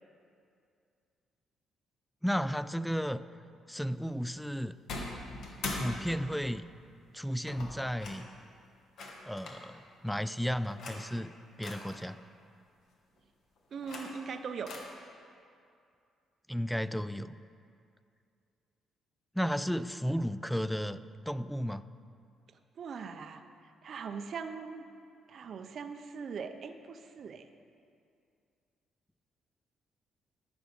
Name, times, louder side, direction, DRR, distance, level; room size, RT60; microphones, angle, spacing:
voice 1, 2.2-3.2 3.7-4.8 5.7-6.7 7.1-8.3 9.3-11.3 11.6-12.2 16.5-17.4 19.3-21.0 21.3-21.8, equal, ahead, 14 dB, 0.3 m, -33 dB
sound 1, 4.9-6.5 7.5-8.2 9.0-9.6 10.6-11.1 11.6-12.0 13.6-14.3 14.7-14.8, left 2 dB, 70° left, 1.4 m, -41 dB
voice 2, 13.7-14.7 22.8-24.8 25.3-27.5, right 5 dB, 55° right, 7 dB, 0.6 m, -41 dB
14.0 x 6.1 x 5.2 m, 2.4 s
cardioid pair, 90°, 0 cm